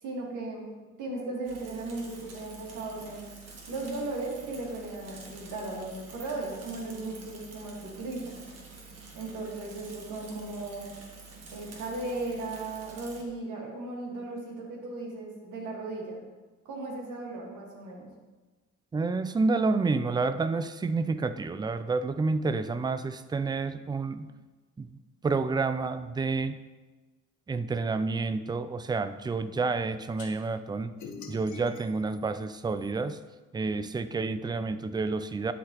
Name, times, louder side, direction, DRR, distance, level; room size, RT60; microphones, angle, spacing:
voice 1, 0.0-3.2 3.7-8.4 9.1-10.8 11.5-16.2 16.6-18.1, right 2 dB, 80° right, -1 dB, 1.8 m, -36 dB
Bicycle / Mechanisms, 1.4-13.2, right 4 dB, 55° right, 1.5 m, -48 dB
voice 2, 18.9-24.3 24.8-26.6 27.5-30.9 31.3-33.2 33.5-35.5, right 3 dB, 15° right, 12 dB, 0.3 m, -29 dB
sound 1, 30.2-30.3 31.0-33.2, left 5 dB, 70° left, 1.1 m, -46 dB
11.5 x 3.9 x 3.0 m, 1.3 s
cardioid pair, 90°, 30 cm